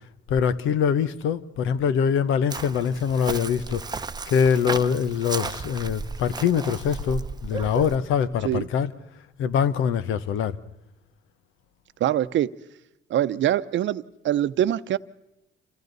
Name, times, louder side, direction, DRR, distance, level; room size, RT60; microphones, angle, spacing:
voice 1, 0.3-3.8 4.3-8.9 9.4-10.6, left 7 dB, 90° left, 1.0 m, -23 dB
Chirp tweet, 2.5-8.0, right 4 dB, 20° right, 0.8 m, -34 dB
voice 2, 12.0-12.5 13.1-15.0, right 12 dB, 70° right, 0.7 m, -24 dB
28.5 x 26.0 x 4.1 m
cardioid pair, 90°, 20 cm